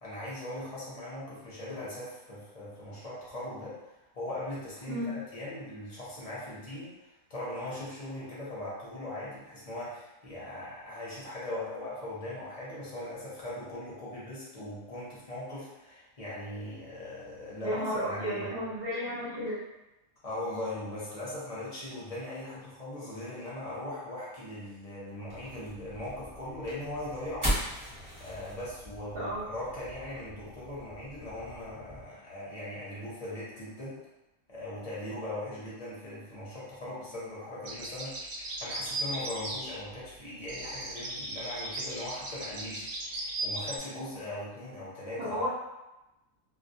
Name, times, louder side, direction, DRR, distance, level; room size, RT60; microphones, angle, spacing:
voice 1, 0.0-18.6 20.2-27.6 28.2-34.0 34.5-45.5, left 1 dB, 40° left, -8 dB, 0.5 m, -40 dB
voice 2, 17.6-19.6 29.1-29.5 45.2-45.5, equal, 50° right, -8 dB, 0.7 m, -33 dB
sound 1, 25.3-32.0, equal, 20° right, 0.5 m, -39 dB
sound 2, 37.6-40.1 40.5-43.8, right 2 dB, 90° right, 1.1 m, -37 dB
2.2 x 2.1 x 2.6 m, 0.98 s
omnidirectional pair, 1.5 m